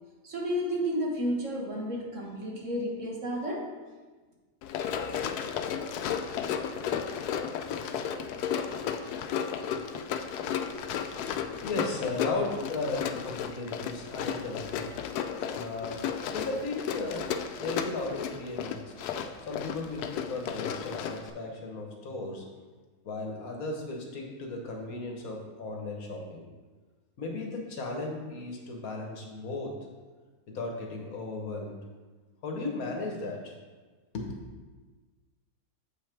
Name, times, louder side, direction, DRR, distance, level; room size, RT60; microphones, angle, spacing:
voice 1, 0.2-3.7, equal, 55° right, -2 dB, 1.6 m, -31 dB
Run, 4.6-21.3, left 8 dB, 90° left, 1.1 m, -34 dB
voice 2, 11.6-14.9 15.5-16.0 16.3-17.3 17.6-18.9 19.4-22.4 23.0-26.5 27.2-29.7 30.5-31.8 32.4-33.5 34.1-34.5, left 2 dB, 65° left, 1 dB, 1.5 m, -35 dB
7.3 x 5.7 x 4.4 m, 1.3 s
omnidirectional pair, 1.6 m